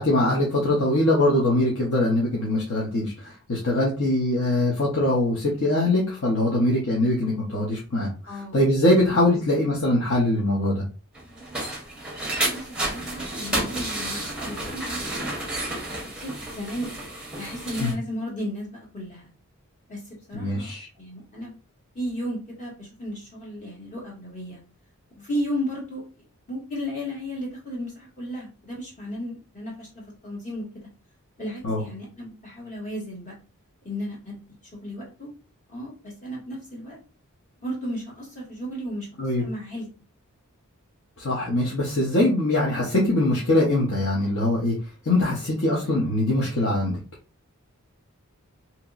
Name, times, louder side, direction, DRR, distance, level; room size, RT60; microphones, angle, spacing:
voice 1, 0.0-10.8 17.8-17.9 20.3-20.9 31.6-31.8 39.2-39.4 41.2-44.8 45.1-46.9, left 1 dB, 55° left, -4 dB, 0.8 m, -22 dB
voice 2, 8.3-8.6 9.3-9.6 12.5-15.3 15.6-16.9 17.4-19.3 19.9-20.0 20.3-20.7 21.0-21.5 21.9-24.6 25.1-26.0 26.5-30.7 31.4-33.3 33.8-34.4 34.7-35.3 35.7-37.0 37.6-39.1 39.4-39.9, equal, 35° left, -4 dB, 1.5 m, -34 dB
sound 1, 11.1-17.9, right 1 dB, 5° right, 0.8 m, -31 dB
2.9 x 2.8 x 2.3 m, 0.34 s
head